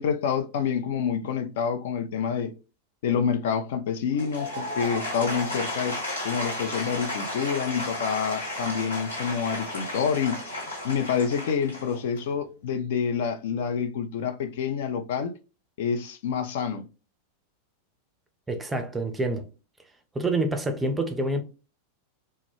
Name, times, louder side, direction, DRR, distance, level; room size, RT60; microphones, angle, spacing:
voice 1, 0.0-2.5 3.0-6.0 6.2-10.4 10.8-15.3 15.8-16.9, left 7 dB, 55° left, 0.3 m, -27 dB
Applause / Crowd, 4.1-12.3, left 1 dB, 75° left, 1.2 m, -33 dB
voice 2, 18.5-19.5 20.1-21.4, right 2 dB, 10° right, 0.4 m, -27 dB
2.2 x 2.1 x 3.0 m
figure-of-eight pair, 90°, 0 cm